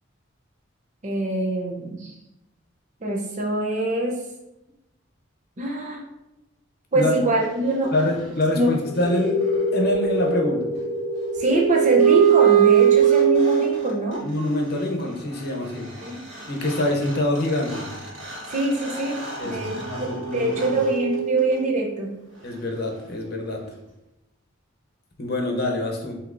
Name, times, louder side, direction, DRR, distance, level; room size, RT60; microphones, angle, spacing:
voice 1, 1.0-2.1 3.0-4.2 5.6-6.0 6.9-7.9 8.6-8.7 11.4-14.3 16.0-16.2 18.5-22.1, right 1 dB, 35° right, 0 dB, 0.7 m, -24 dB
voice 2, 7.9-9.3 9.7-10.6 14.2-15.9 16.5-17.9 19.4-20.8 22.4-23.6 25.2-26.2, left 1 dB, 50° left, 1 dB, 0.8 m, -25 dB
sound 1, 8.8-14.2 16.0-16.1 16.3-21.8, right 8 dB, 70° right, 1.5 m, -22 dB
6.4 x 2.9 x 2.6 m, 0.93 s
head